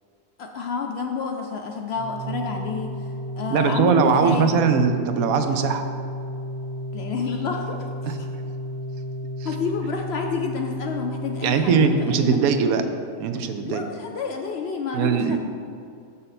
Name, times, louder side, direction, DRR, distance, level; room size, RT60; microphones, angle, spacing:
voice 1, 0.4-3.1 3.4-4.6 6.9-8.2 9.4-12.4 13.6-15.4, left 5 dB, 65° left, 3 dB, 0.6 m, -29 dB
Organ, 1.9-12.8, left 1 dB, 65° right, 1.6 m, -33 dB
voice 2, 3.5-5.8 8.0-8.2 9.4-9.5 11.4-12.8 13.2-13.8 14.9-15.4, right 6 dB, 85° right, 7 dB, 1.0 m, -20 dB
6.6 x 5.5 x 4.1 m, 2.4 s
omnidirectional pair, 1.5 m